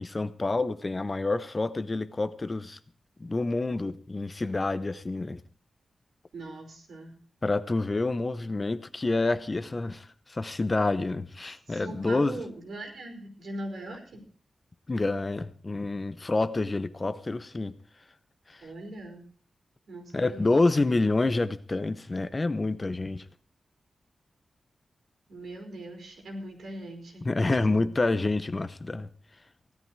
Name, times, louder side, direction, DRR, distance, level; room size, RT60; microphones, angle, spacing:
voice 1, 0.0-2.8 3.2-5.4 7.4-12.4 14.9-17.8 18.5-18.7 20.1-23.2 27.2-29.1, left 2 dB, 25° left, 0.8 m, -28 dB
voice 2, 6.3-7.2 11.7-14.2 18.6-19.3 19.9-20.5 25.3-27.9, right 1 dB, 75° right, 5.3 m, -40 dB
17.0 x 13.0 x 4.7 m
wide cardioid pair, 155°, 0 cm